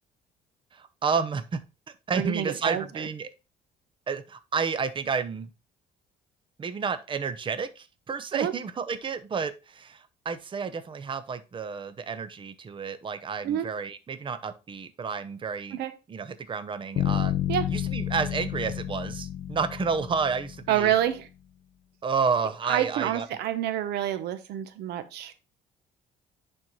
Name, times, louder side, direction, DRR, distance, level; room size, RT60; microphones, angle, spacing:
voice 1, 0.7-1.6 2.1-3.3 4.1-5.5 6.6-15.8 16.1-17.3 17.7-20.9 22.0-23.3, right 5 dB, 30° right, 11 dB, 0.8 m, -30 dB
voice 2, 2.1-2.8 8.3-8.5 13.4-13.7 15.7-15.9 17.5-17.7 20.7-21.3 22.6-25.4, right 11 dB, 80° right, 11 dB, 0.9 m, -27 dB
Bass guitar, 17.0-21.0, left 11 dB, 60° left, 1.2 m, -30 dB
10.5 x 4.5 x 3.1 m, 0.28 s
cardioid pair, 110°, 17 cm